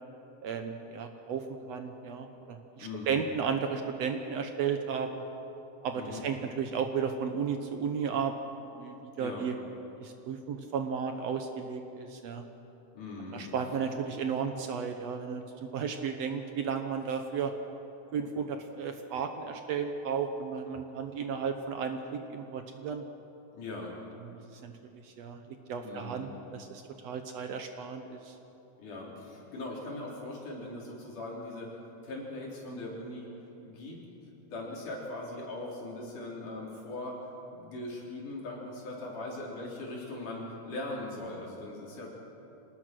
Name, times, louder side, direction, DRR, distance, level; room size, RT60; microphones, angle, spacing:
voice 1, 0.4-5.2 5.8-8.3 8.7-9.6 10.0-12.4 13.3-15.4 15.7-17.5 18.1-22.0 22.3-23.0 24.2-25.4 25.7-28.3, right 6 dB, 65° right, 6 dB, 1.8 m, -34 dB
voice 2, 2.8-3.2 5.9-6.2 9.2-9.5 12.9-13.5 23.5-23.9 25.8-26.3 28.8-31.8 32.0-33.3 33.6-34.0 34.4-37.2 37.5-42.1, left 2 dB, 75° left, -3 dB, 5.5 m, -40 dB
25.5 x 19.0 x 6.2 m, 3.0 s
omnidirectional pair, 3.6 m